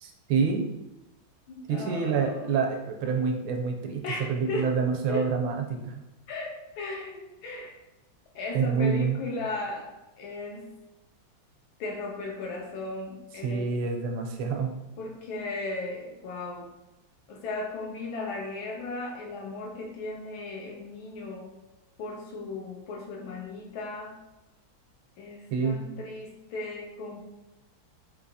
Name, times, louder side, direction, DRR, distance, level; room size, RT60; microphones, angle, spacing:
voice 1, 0.0-0.6 1.7-6.0 8.5-9.2 13.4-14.7 25.5-25.8, right 5 dB, 85° right, 3 dB, 1.4 m, -27 dB
voice 2, 1.5-2.5 4.0-4.7 5.1-5.3 6.3-7.8 8.3-9.9 10.2-10.8 11.8-13.6 15.0-16.7 17.3-21.5 22.0-24.2 25.2-27.2, left 3 dB, 85° left, -1 dB, 1.6 m, -36 dB
4.0 x 2.6 x 2.7 m, 0.99 s
omnidirectional pair, 2.2 m